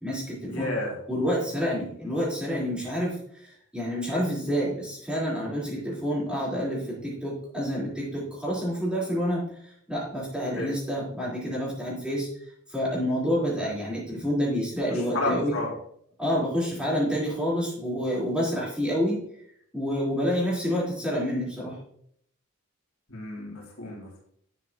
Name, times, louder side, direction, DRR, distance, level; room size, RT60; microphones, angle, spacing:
voice 1, 0.0-0.7 1.1-9.4 9.9-12.3 12.7-15.6 16.2-19.2 19.7-21.8, equal, 5° right, -7 dB, 3.9 m, -28 dB
voice 2, 0.5-0.9 10.6-10.7 14.9-15.7 23.1-24.2, left 2 dB, 80° left, -3 dB, 3.3 m, -31 dB
11.0 x 7.2 x 2.9 m, 0.67 s
head